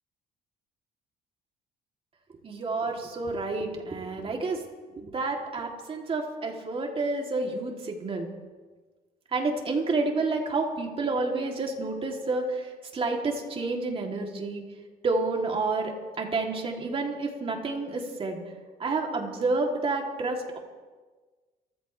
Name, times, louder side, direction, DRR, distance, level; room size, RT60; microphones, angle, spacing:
voice 1, 2.4-4.6 4.9-8.3 9.3-14.6 15.0-18.4 18.8-20.6, right 3 dB, 35° right, 1 dB, 3.1 m, -29 dB
28.0 x 15.0 x 3.4 m, 1.3 s
cardioid pair, 110°, 17 cm